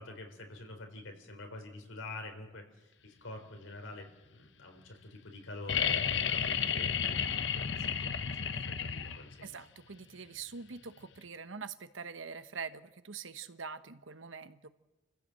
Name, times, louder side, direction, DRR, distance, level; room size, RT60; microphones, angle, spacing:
voice 1, 0.0-9.6, left 2 dB, 90° left, 5 dB, 4.0 m, -47 dB
sound 1, 5.7-9.5 11.2-11.3, left 7 dB, 65° left, 0.9 m, -32 dB
voice 2, 9.4-14.7, right 5 dB, 85° right, 11 dB, 1.1 m, -44 dB
29.0 x 15.5 x 7.7 m, 1.1 s
head